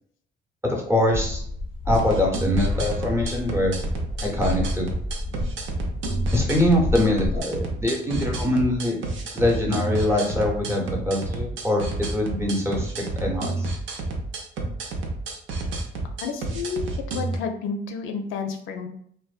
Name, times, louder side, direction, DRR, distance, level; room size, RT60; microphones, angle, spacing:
voice 1, 0.6-1.4 1.9-3.8 4.2-4.9 6.3-9.0 9.3-12.9 13.2-13.7, left 1 dB, 15° right, -1 dB, 0.7 m, -23 dB
sound 1, 1.1-7.4, left 2 dB, 30° left, 0.4 m, -30 dB
sound 2, 1.9-17.4, right 2 dB, 75° right, 0.6 m, -30 dB
voice 2, 16.2-16.9 17.1-18.9, left 5 dB, 85° left, 5 dB, 0.4 m, -30 dB
2.5 x 2.1 x 2.4 m, 0.63 s
cardioid pair, 90°, 20 cm